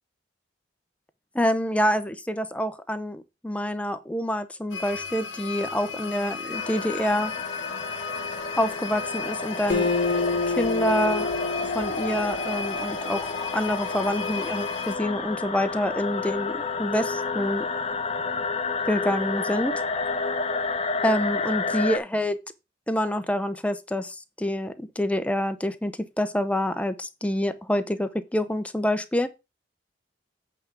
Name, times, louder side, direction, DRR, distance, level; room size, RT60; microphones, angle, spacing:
voice 1, 1.3-7.3 8.6-9.9 10.5-11.3 11.6-13.3 13.5-17.7 18.9-19.7 21.0-22.4 22.9-29.3, equal, 5° left, 0.8 m, -27 dB
sound 1, 4.7-15.0, left 5 dB, 80° left, 0.9 m, -36 dB
sound 2, 6.5-22.0, left 4 dB, 30° left, 0.9 m, -30 dB
Acoustic guitar, 9.7-13.1, left 3 dB, 50° left, 2.0 m, -28 dB
8.5 x 3.7 x 6.8 m
head